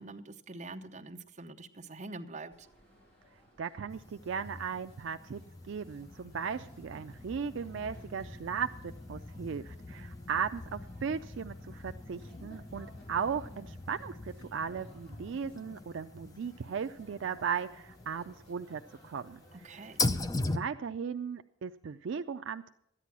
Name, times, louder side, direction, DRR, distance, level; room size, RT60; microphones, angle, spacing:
voice 1, 0.0-2.7 19.6-20.1, right 2 dB, 35° right, 4 dB, 0.8 m, -45 dB
sound 1, 2.5-20.0, right 1 dB, 50° left, 3.6 m, -59 dB
voice 2, 3.6-5.4 5.7-8.7 9.1-19.9 20.5-22.7, right 6 dB, 65° right, 8 dB, 0.4 m, -37 dB
sound 2, 3.9-20.6, left 2 dB, 20° left, 0.4 m, -41 dB
13.5 x 9.9 x 6.0 m, 0.81 s
head